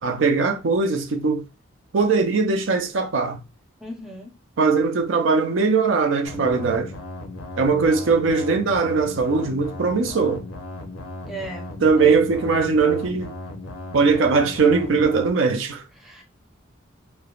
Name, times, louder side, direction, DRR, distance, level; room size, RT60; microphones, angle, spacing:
voice 1, 0.0-1.5 1.9-3.4 4.6-6.9 7.6-10.5 11.8-13.3 13.9-15.8, right 4 dB, 70° right, 0.5 m, -20 dB
voice 2, 3.8-4.3 11.3-11.7 12.0-12.2 16.0-16.2, right 1 dB, ahead, 0.6 m, -35 dB
sound 1, 6.3-15.3, left 2 dB, 85° left, 0.6 m, -36 dB
3.2 x 2.0 x 2.4 m
head